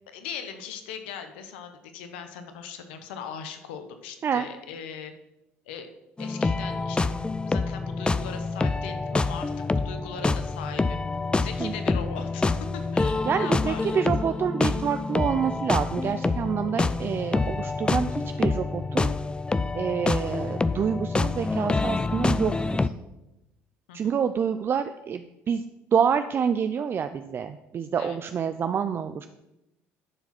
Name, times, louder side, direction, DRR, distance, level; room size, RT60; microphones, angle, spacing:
voice 1, 0.1-5.1 5.7-5.9 6.2-7.1 7.5-9.5 9.8-11.0 11.4-14.0 14.3-14.4 23.9-24.1 28.0-28.2, left 7 dB, 90° left, 8 dB, 1.0 m, -39 dB
sound 1, 6.2-22.9, left 3 dB, 15° left, 0.4 m, -27 dB
voice 2, 13.3-18.1 18.4-19.1 19.7-22.5 23.9-25.6 25.9-29.3, right 7 dB, 45° right, 10 dB, 0.5 m, -27 dB
11.0 x 4.8 x 5.9 m, 0.94 s
supercardioid pair, 70°, 6 cm